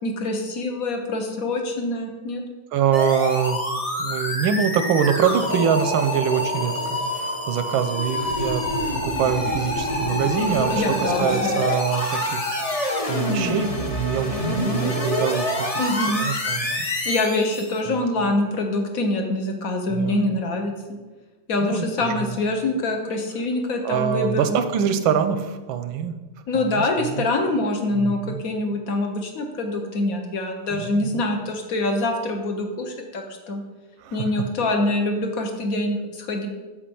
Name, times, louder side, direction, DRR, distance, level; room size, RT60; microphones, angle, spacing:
voice 1, 0.0-2.4 10.7-11.5 15.8-16.2 17.0-20.7 21.5-24.6 26.5-33.6 34.1-36.5, left 2 dB, 50° left, 3 dB, 1.5 m, -25 dB
voice 2, 2.7-3.6 4.0-8.6 9.0-15.7 16.2-16.8 17.9-18.3 19.9-20.3 21.6-22.3 23.8-26.2 26.5-26.8 27.1-27.2 27.9-28.4 30.7-31.2 34.0-34.3, right 8 dB, 90° right, 9 dB, 1.5 m, -24 dB
sound 1, 2.9-17.8, left 1 dB, 30° left, 0.7 m, -26 dB
sound 2, 5.5-12.5, right 1 dB, 80° left, 1.7 m, -39 dB
7.6 x 5.1 x 7.0 m, 1.2 s
omnidirectional pair, 2.1 m